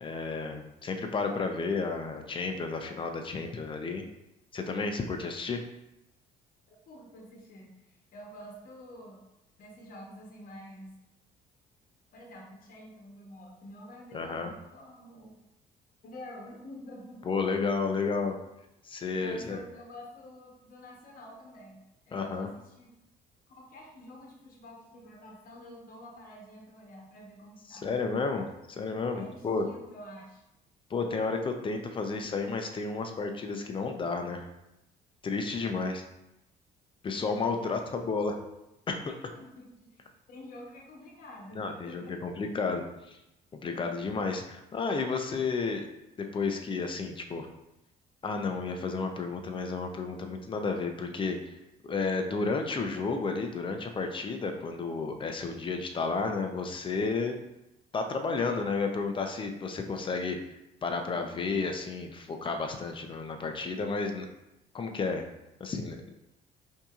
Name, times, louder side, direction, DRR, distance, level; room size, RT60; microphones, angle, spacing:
voice 1, 0.0-4.0 4.5-5.6 14.1-14.5 17.2-18.3 18.8-19.6 22.1-22.5 27.7-29.7 30.9-34.5 35.2-36.0 37.0-38.4 38.9-39.1 41.6-43.2 43.5-45.9 46.2-47.5 48.2-51.5 51.8-57.4 57.9-60.4 60.8-64.3 64.7-65.3 65.6-66.1, left 4 dB, 30° left, 5 dB, 0.5 m, -32 dB
voice 2, 6.9-9.2 9.6-10.9 12.1-15.4 16.0-17.2 17.9-18.3 19.2-22.9 23.6-27.9 29.1-30.4 37.6-38.1 39.2-39.7 39.9-42.2, left 1 dB, 55° left, -1 dB, 1.0 m, -48 dB
5.6 x 2.8 x 2.4 m, 0.89 s
cardioid pair, 110°, 17 cm